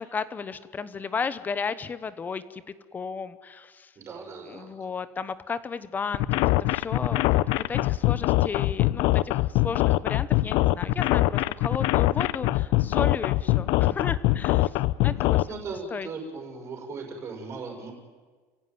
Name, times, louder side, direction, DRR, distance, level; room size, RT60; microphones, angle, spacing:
voice 1, 0.0-2.6 2.9-3.9 4.4-14.8 15.0-15.6 15.9-16.1, left 5 dB, 20° left, 14 dB, 1.0 m, -34 dB
voice 2, 4.0-4.7 15.5-17.9, right 4 dB, 30° right, 2 dB, 5.9 m, -38 dB
sound 1, 6.1-15.4, left 17 dB, 60° left, 0.6 m, -23 dB
29.5 x 15.5 x 9.5 m, 1.5 s
cardioid pair, 150°, 9 cm